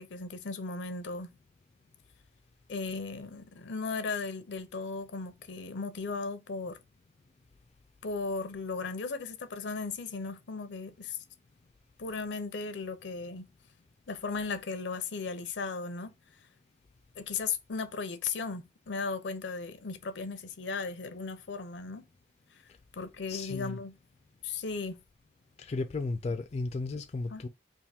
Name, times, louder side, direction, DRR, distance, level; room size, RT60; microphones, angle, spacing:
voice 1, 0.0-1.3 2.7-6.8 8.0-11.2 12.0-13.4 14.1-16.1 17.2-22.0 22.9-23.9 24.4-25.0 27.3-27.4, left 4 dB, 80° left, 0.6 m, -36 dB
voice 2, 23.3-23.8 25.6-27.5, left 3 dB, 35° left, 0.3 m, -34 dB
3.5 x 2.5 x 4.2 m
head